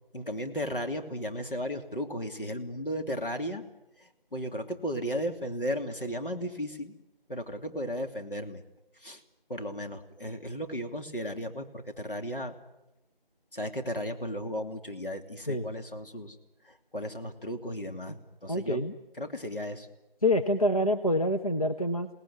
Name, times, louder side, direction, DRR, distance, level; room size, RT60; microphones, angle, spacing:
voice 1, 0.1-3.6 4.0-6.9 7.3-8.6 9.0-9.2 9.5-12.5 13.5-16.4 16.6-18.8 19.2-19.9, equal, 65° left, 5 dB, 3.1 m, -35 dB
voice 2, 18.5-19.0 20.2-22.1, left 1 dB, 40° left, 5 dB, 1.1 m, -26 dB
27.0 x 18.5 x 9.6 m, 0.98 s
figure-of-eight pair, 170°, 29 cm